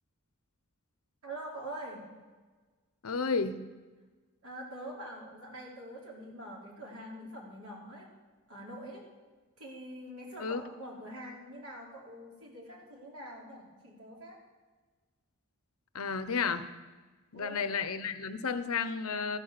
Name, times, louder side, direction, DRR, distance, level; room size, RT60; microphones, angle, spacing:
voice 1, 1.2-2.1 4.4-8.1 8.5-9.1 9.6-14.4 17.3-17.7, right 1 dB, 80° right, -3 dB, 3.9 m, -45 dB
voice 2, 3.0-3.6 10.4-10.6 15.9-16.7 17.3-19.4, left 5 dB, 75° left, 12 dB, 0.8 m, -32 dB
14.0 x 8.4 x 6.8 m, 1.4 s
head